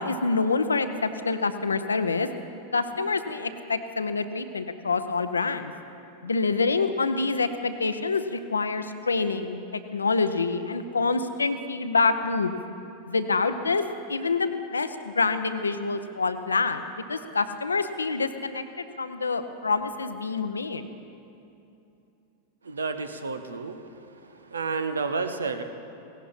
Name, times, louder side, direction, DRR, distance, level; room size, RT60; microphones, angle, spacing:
voice 1, 0.0-2.3 2.7-5.7 6.2-9.6 9.9-12.5 13.1-16.8 17.1-20.8, left 4 dB, 75° left, 10 dB, 0.7 m, -26 dB
voice 2, 22.6-23.8 24.5-25.6, right 4 dB, 75° right, 9 dB, 0.9 m, -30 dB
17.5 x 17.5 x 4.3 m, 2.8 s
figure-of-eight pair, 90°, 0 cm